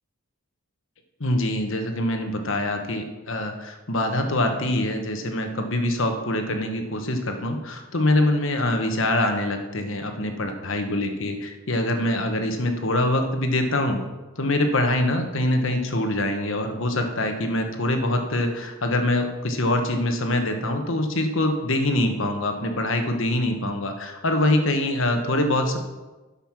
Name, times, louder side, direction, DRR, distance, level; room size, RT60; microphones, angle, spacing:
voice 1, 1.2-14.0 14.4-25.8, left 1 dB, 60° left, 5 dB, 1.2 m, -24 dB
12.0 x 5.7 x 5.9 m, 1.2 s
head